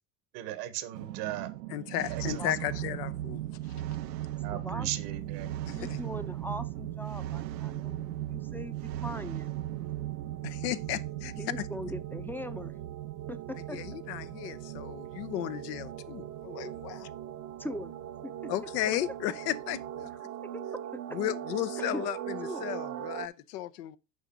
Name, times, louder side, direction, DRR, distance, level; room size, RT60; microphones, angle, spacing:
voice 1, 0.3-1.5 2.1-2.4 4.4-5.5, right 13 dB, 70° right, 1.4 m, -37 dB
sound 1, 0.9-20.2, right 14 dB, 90° right, 0.6 m, -38 dB
voice 2, 1.7-3.4 5.7-6.0 10.4-11.7 13.7-17.1 18.5-20.1 21.1-24.0, left 13 dB, 75° left, 0.8 m, -35 dB
voice 3, 4.5-5.1 5.4-9.5 11.4-12.8 13.3-13.8 17.6-17.9 18.2-18.5 20.5-20.6 20.9-21.2 21.8-22.1 22.4-22.7, left 1 dB, 5° left, 0.6 m, -41 dB
sound 2, 4.9-23.3, right 11 dB, 35° right, 0.7 m, -43 dB
6.6 x 4.9 x 5.3 m
hypercardioid pair, 85°, 49 cm